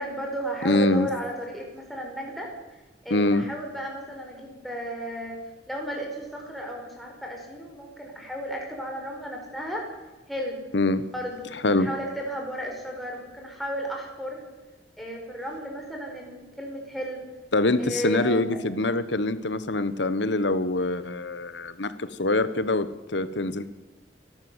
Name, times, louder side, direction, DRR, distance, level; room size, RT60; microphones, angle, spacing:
voice 1, 0.0-2.5 3.0-5.4 5.7-9.8 10.3-10.6 11.1-14.4 15.0-17.2 17.8-18.6, equal, ahead, -1 dB, 4.8 m, -34 dB
voice 2, 0.6-1.1 3.1-3.4 10.7-11.0 11.6-11.9 17.5-23.7, left 2 dB, 70° left, 13 dB, 1.3 m, -24 dB
27.0 x 12.5 x 8.1 m, 1.1 s
head